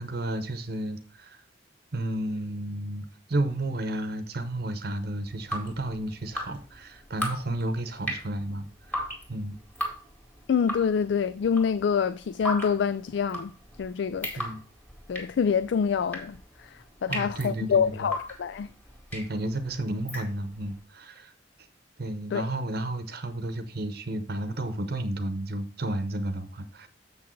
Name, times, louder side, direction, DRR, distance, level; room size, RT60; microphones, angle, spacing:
voice 1, 0.0-1.4 1.9-9.0 9.3-9.6 14.4-14.6 17.1-18.1 19.1-21.3 22.0-26.9, right 1 dB, 55° right, 0.8 m, -32 dB
Drip, 5.3-20.7, equal, 10° left, 2.0 m, -37 dB
voice 2, 10.5-13.5 13.8-14.5 15.1-18.7 22.3-22.5, left 6 dB, 65° left, 0.3 m, -26 dB
7.4 x 6.1 x 4.5 m
head